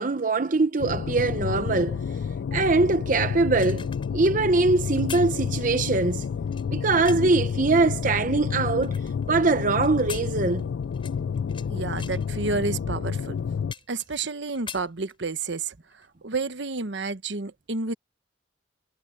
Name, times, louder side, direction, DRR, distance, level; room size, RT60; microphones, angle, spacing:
voice 1, 0.0-2.0 2.5-6.3 6.7-9.0 9.3-10.6, right 3 dB, 45° right, 0.8 m, -22 dB
sound 1, 0.8-13.7, left 6 dB, 80° left, 0.3 m, -30 dB
sound 2, 3.4-7.4 8.0-9.4 9.8-11.7 12.0-12.3 12.9-13.0 13.3-14.3 14.5-15.5 15.9-16.1, left 7 dB, 30° left, 6.2 m, -42 dB
voice 2, 11.7-13.4 13.9-15.7 16.2-17.9, right 3 dB, 75° right, 1.1 m, -30 dB
head